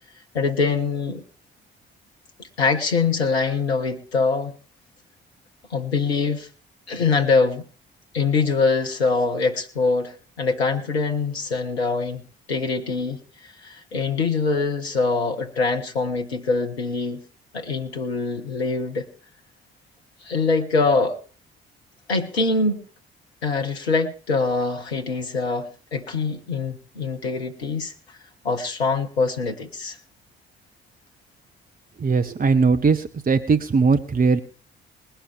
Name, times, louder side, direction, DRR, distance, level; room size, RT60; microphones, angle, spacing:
voice 1, 0.3-1.2 2.6-4.5 5.7-6.5 6.9-7.6 8.1-12.2 12.5-13.2 13.4-17.2 17.5-19.1 20.2-21.2 22.1-22.9 23.4-27.9 28.4-30.0, left 4 dB, 80° left, 4 dB, 1.1 m, -23 dB
voice 2, 32.0-34.4, right 4 dB, 30° right, 8 dB, 1.2 m, -19 dB
20.0 x 11.5 x 3.4 m, 0.39 s
figure-of-eight pair, 40°, 31 cm